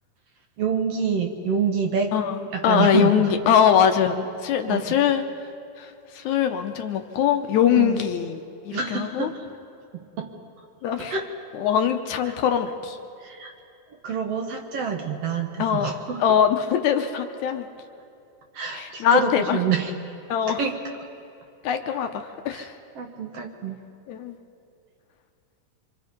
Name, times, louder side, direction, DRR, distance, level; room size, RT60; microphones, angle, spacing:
voice 1, 0.6-2.2 2.5-3.3 4.7-5.0 7.8-8.0 8.7-9.4 9.9-10.3 11.0-11.3 13.2-13.5 14.0-16.2 18.5-19.9 20.5-20.8 22.5-22.7 23.0-23.8, right 6 dB, 60° right, 3 dB, 2.0 m, -27 dB
voice 2, 2.6-5.2 5.8-5.9 6.1-8.4 8.7-9.3 10.8-11.2 11.5-13.0 15.6-15.9 16.2-17.7 18.7-19.6 20.3-20.6 21.6-22.7 24.1-24.4, left 8 dB, 70° left, 6 dB, 2.1 m, -22 dB
26.0 x 25.0 x 5.3 m, 2.6 s
omnidirectional pair, 3.6 m